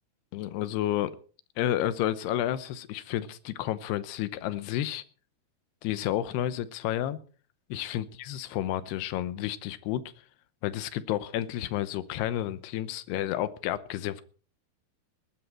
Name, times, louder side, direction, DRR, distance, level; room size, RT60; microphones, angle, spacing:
voice 1, 0.3-1.2 1.6-5.0 5.8-7.2 7.7-10.0 10.6-14.2, left 12 dB, 85° left, 14 dB, 3.0 m, -31 dB
19.0 x 13.0 x 4.4 m, 0.39 s
omnidirectional pair, 4.6 m